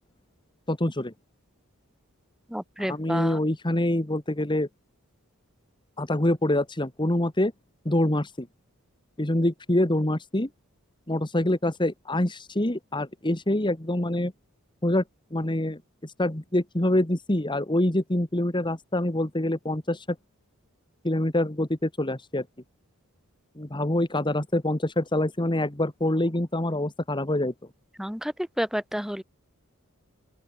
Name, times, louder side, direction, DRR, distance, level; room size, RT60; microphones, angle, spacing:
voice 1, 0.7-1.1 2.8-4.7 6.0-7.5 7.9-8.5 9.2-10.5 11.1-14.3 14.8-15.0 15.3-20.1 21.0-22.5 23.6-27.5, left 1 dB, 20° left, 1.7 m, -25 dB
voice 2, 2.5-3.4 28.0-29.2, equal, ahead, 2.0 m, -30 dB
open air
head